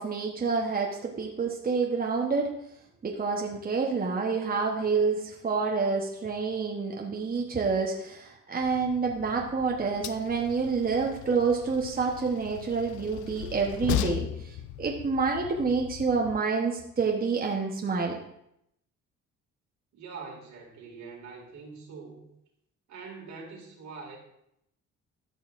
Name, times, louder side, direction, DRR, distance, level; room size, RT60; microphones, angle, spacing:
voice 1, 0.0-2.5 3.0-18.2, right 4 dB, 30° right, 0 dB, 1.0 m, -28 dB
Train, 8.6-16.4, left 11 dB, 75° left, 0.5 m, -37 dB
voice 2, 19.9-22.3 22.9-24.2, right 4 dB, 70° right, -1 dB, 2.3 m, -44 dB
13.0 x 5.5 x 2.5 m, 0.77 s
cardioid pair, 90°, 30 cm